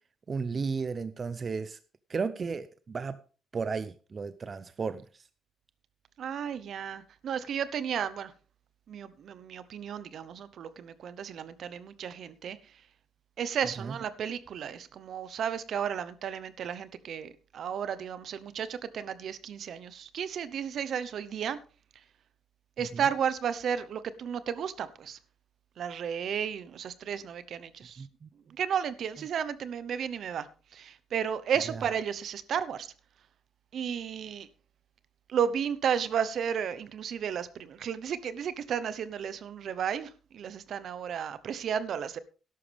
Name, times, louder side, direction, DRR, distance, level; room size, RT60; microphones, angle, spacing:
voice 1, 0.3-1.8 2.1-3.2 3.5-5.3 13.8-13.9 22.9-23.0 28.0-28.3 31.7-31.8, right 5 dB, 40° right, 0.6 m, -34 dB
voice 2, 6.2-8.3 8.9-12.6 13.4-21.6 22.8-25.2 25.8-28.0 28.5-30.5 30.7-32.9 33.7-34.5 35.3-42.2, right 8 dB, 65° right, 0.9 m, -33 dB
13.0 x 11.5 x 3.5 m
cardioid pair, 90°, 0 cm